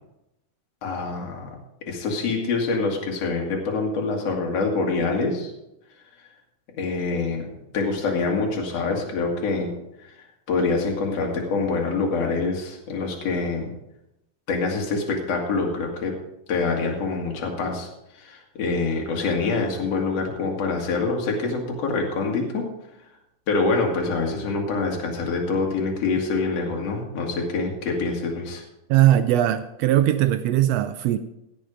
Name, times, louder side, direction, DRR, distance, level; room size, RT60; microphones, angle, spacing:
voice 1, 0.8-1.5 1.9-5.5 6.8-9.7 10.0-10.1 10.5-13.7 14.5-16.2 16.5-17.9 18.1-22.7 23.5-28.6, left 3 dB, 55° left, 0 dB, 3.0 m, -25 dB
voice 2, 28.9-31.2, right 12 dB, 80° right, 11 dB, 1.5 m, -19 dB
17.0 x 6.4 x 5.1 m, 0.86 s
omnidirectional pair, 3.5 m